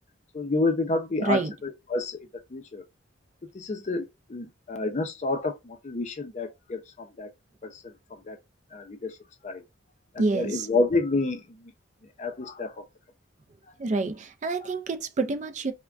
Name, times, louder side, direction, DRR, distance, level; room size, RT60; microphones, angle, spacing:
voice 1, 0.3-2.8 3.5-7.3 7.6-7.9 8.3-8.4 8.7-9.2 9.4-9.6 10.1-11.4 12.2-12.8, left 3 dB, 35° left, 0.5 m, -29 dB
voice 2, 1.2-1.5 10.2-10.7 13.8-15.7, right 3 dB, 40° right, 0.4 m, -27 dB
3.4 x 2.1 x 2.4 m
head